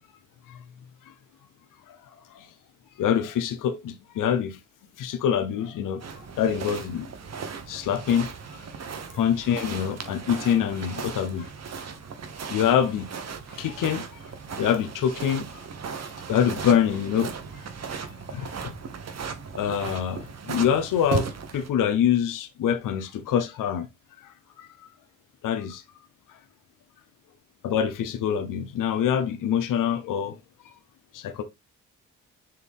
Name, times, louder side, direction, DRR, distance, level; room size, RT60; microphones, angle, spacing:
voice 1, 3.0-4.6 5.0-6.1 6.4-7.1 7.7-8.3 9.1-11.5 12.5-13.1 13.5-14.0 14.6-15.7 16.3-17.3 18.0-18.7 19.5-23.9 24.2-24.7 25.4-25.8 27.6-30.4 31.1-31.4, left 9 dB, 75° left, 1.0 m, -25 dB
sound 1, 6.0-21.7, right 5 dB, 55° right, 1.2 m, -36 dB
6.7 x 3.9 x 3.6 m
supercardioid pair, 60°, 32 cm